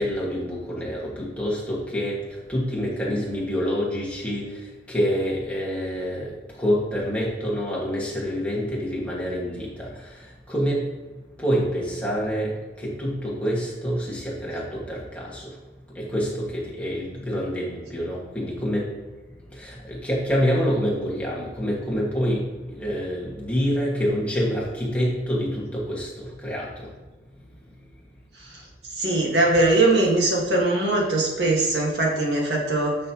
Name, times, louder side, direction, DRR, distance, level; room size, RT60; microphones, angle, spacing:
voice 1, 0.0-2.2 2.5-10.8 11.4-15.6 15.9-18.9 19.5-26.9, equal, 5° left, -6 dB, 1.9 m, -27 dB
voice 2, 29.0-33.0, right 2 dB, 70° right, -1 dB, 1.8 m, -21 dB
10.5 x 6.3 x 3.0 m, 1.2 s
head